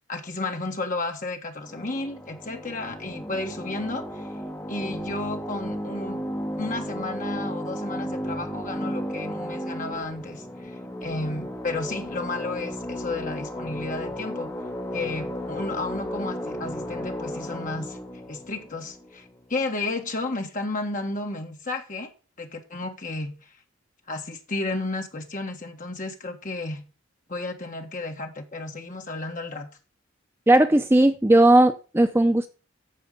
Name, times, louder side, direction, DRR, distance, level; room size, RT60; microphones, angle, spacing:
voice 1, 0.1-4.3 4.7-6.3 6.6-14.5 14.9-18.0 18.3-22.1 22.4-23.5 24.1-26.8 27.3-29.7, left 2 dB, 40° left, 1.4 m, -32 dB
sound 1, 1.6-19.7, equal, 15° left, 1.6 m, -34 dB
voice 2, 30.5-32.5, right 1 dB, 10° right, 0.5 m, -17 dB
14.0 x 4.6 x 5.2 m
head